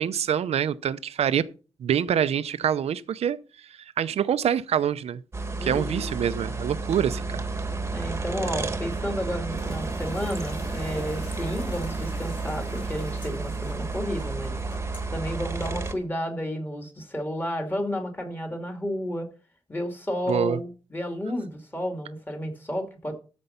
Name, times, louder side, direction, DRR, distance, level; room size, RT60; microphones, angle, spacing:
voice 1, 0.0-1.5 1.8-5.2 5.6-7.4 20.3-20.6, right 9 dB, 90° right, 0.6 m, -26 dB
sound 1, 5.3-15.9, right 3 dB, 25° right, 1.2 m, -31 dB
voice 2, 5.6-6.1 7.9-14.6 15.1-19.3 19.7-23.2, equal, 20° left, 2.5 m, -32 dB
sound 2, 9.4-14.4, left 3 dB, 75° left, 4.6 m, -47 dB
sound 3, 11.1-16.1, left 2 dB, 50° left, 5.1 m, -52 dB
13.5 x 5.3 x 5.7 m
wide cardioid pair, 135°, 10 cm